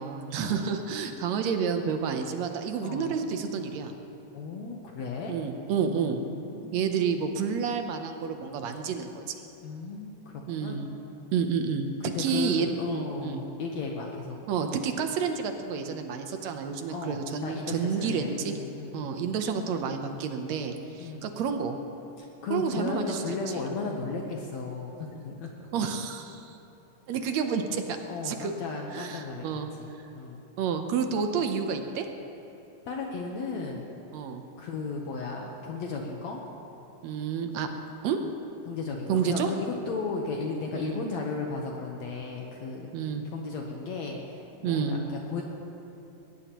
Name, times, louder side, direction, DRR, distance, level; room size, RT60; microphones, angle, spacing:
voice 1, 0.0-3.9 5.3-6.2 6.7-9.4 10.5-10.9 11.3-13.4 14.5-18.6 18.9-21.8 22.5-23.2 23.5-23.6 23.9-24.0 25.7-26.6 27.1-28.0 28.2-28.5 28.9-29.7 30.6-32.1 34.1-34.4 37.0-37.7 38.0-38.2 39.1-39.5 40.7-41.0 42.9-43.2 44.6-45.0, right 6 dB, 70° right, 6 dB, 1.9 m, -30 dB
voice 2, 2.8-3.1 4.3-5.4 5.9-7.1 9.6-10.8 12.0-14.4 16.9-19.4 21.0-21.3 22.2-25.7 28.1-29.5 29.8-30.4 32.9-33.9 34.6-36.4 38.7-42.9 43.3-45.4, left 4 dB, 65° left, 0 dB, 2.1 m, -35 dB
21.0 x 18.5 x 3.0 m, 3.0 s
omnidirectional pair, 3.6 m